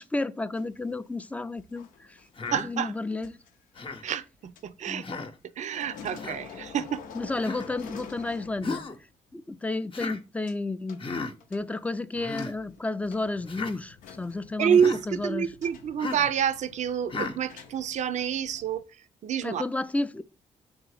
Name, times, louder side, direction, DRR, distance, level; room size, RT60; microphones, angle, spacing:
voice 1, 0.0-2.2 2.6-3.4 4.9-5.2 7.1-8.8 9.3-11.0 11.5-14.8 15.1-15.5 19.4-20.2, left 2 dB, 10° left, 0.4 m, -32 dB
sound 1, 0.5-5.4 5.7-9.0 9.3-9.4 10.5-10.6 10.9-11.9 12.4-18.8, left 6 dB, 80° left, 0.6 m, -48 dB
Human voice, 2.4-2.7 3.8-4.0 5.0-5.3 6.2-6.4 7.4-7.7 8.6-9.0 9.9-10.2 11.0-11.3 12.1-12.5 13.5-13.7 14.7-15.0 16.0-16.3 17.1-17.4, left 3 dB, 40° left, 0.8 m, -34 dB
voice 2, 2.5-2.9 4.0-5.0 5.6-7.0 14.6-18.8 19.2-19.6, right 8 dB, 60° right, 0.4 m, -27 dB
3.6 x 3.0 x 4.8 m
supercardioid pair, 60°, 14 cm